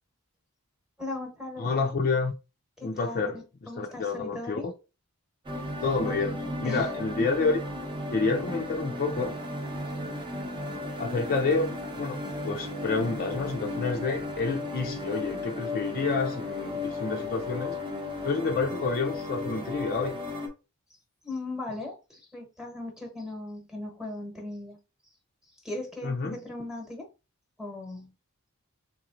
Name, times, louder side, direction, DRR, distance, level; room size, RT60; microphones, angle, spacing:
voice 1, 1.0-1.9 2.8-4.7 6.0-6.2 6.6-6.9 21.2-24.8 25.6-27.1 27.6-28.1, left 2 dB, 5° right, 1.1 m, -38 dB
voice 2, 1.6-2.3 2.8-3.4 3.8-4.7 5.8-7.6 8.1-9.4 11.0-17.8 18.2-20.2 26.0-26.4, left 4 dB, 40° left, 0.5 m, -29 dB
sound 1, 5.4-20.5, left 2 dB, 20° right, 0.8 m, -35 dB
3.7 x 3.1 x 2.5 m
head